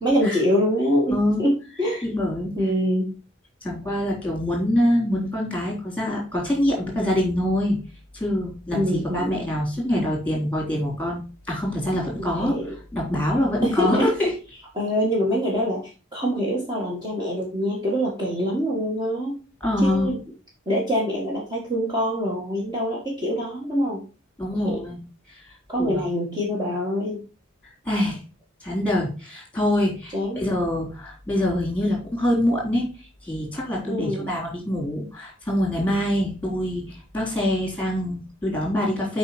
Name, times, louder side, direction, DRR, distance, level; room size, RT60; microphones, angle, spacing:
voice 1, 0.0-2.0 2.6-3.0 8.7-9.4 12.4-12.7 13.6-14.1 14.8-15.8 16.1-19.4 19.8-20.2 20.7-24.0 24.6-24.8 25.7-27.2 30.1-30.4 33.9-34.3, equal, 20° right, -4 dB, 1.8 m, -24 dB
voice 2, 1.1-1.4 2.0-2.5 3.6-7.8 8.1-11.2 11.5-14.3 19.6-20.1 24.4-25.0 25.3-25.4 25.7-26.0 27.9-28.2 28.6-32.9 33.2-39.2, left 1 dB, 5° left, -1 dB, 3.7 m, -25 dB
7.9 x 4.8 x 4.3 m, 0.34 s
head